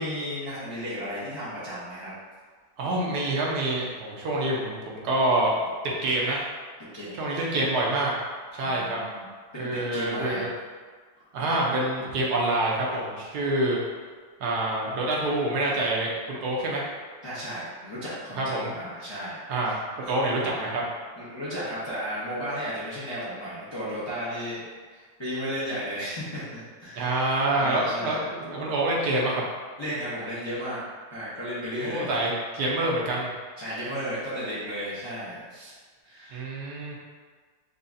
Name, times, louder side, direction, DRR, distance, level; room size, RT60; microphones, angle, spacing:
voice 1, 0.0-2.1 6.9-7.2 8.6-9.2 9.5-10.5 17.2-19.7 20.0-20.1 21.2-24.6 24.9-27.3 27.6-28.2 29.8-30.8 31.1-32.1 33.6-35.7 36.0-36.4, equal, 20° left, -11 dB, 0.7 m, -34 dB
voice 2, 2.8-5.5 5.8-6.4 7.1-8.1 8.5-9.0 9.6-10.5 11.3-13.8 14.4-16.9 18.4-18.7 19.5-20.8 26.9-29.4 31.8-33.3 36.3-37.0, right 1 dB, 75° right, -3 dB, 1.2 m, -26 dB
5.3 x 2.4 x 2.6 m, 1.5 s
omnidirectional pair, 1.8 m